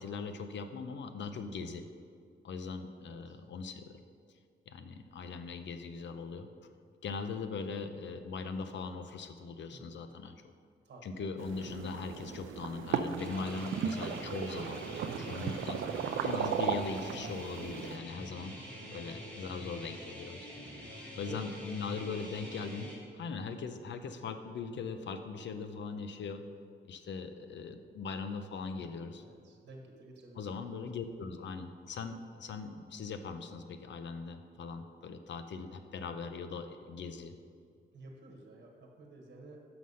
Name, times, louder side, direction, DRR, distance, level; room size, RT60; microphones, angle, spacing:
voice 1, 0.0-1.8 2.4-4.0 4.7-6.5 7.0-10.4 11.0-15.8 16.2-18.5 18.9-20.5 21.2-26.4 26.8-29.2 30.4-37.4, left 5 dB, 65° left, 9 dB, 0.6 m, -40 dB
voice 2, 3.1-3.4 9.7-10.0 10.8-11.3 21.2-21.9 22.2-22.3 29.2-30.5 37.9-39.7, right 2 dB, 60° right, 1 dB, 1.3 m, -52 dB
sound 1, 11.4-18.0, right 7 dB, 80° right, 0.5 m, -36 dB
sound 2, 13.2-22.9, equal, 5° left, 2.1 m, -46 dB
6.3 x 5.9 x 5.5 m, 2.2 s
wide cardioid pair, 135°, 20 cm